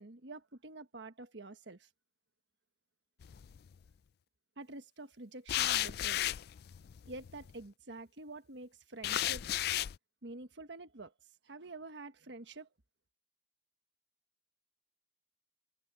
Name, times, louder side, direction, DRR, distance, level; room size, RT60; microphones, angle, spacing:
voice 1, 0.0-1.9 4.6-6.2 7.1-9.5 10.2-11.1 11.4-12.7, right 2 dB, 70° right, 1.4 m, -48 dB
sound 1, 3.2-3.8 5.5-7.5 9.0-10.0, left 13 dB, 60° left, 0.3 m, -34 dB
head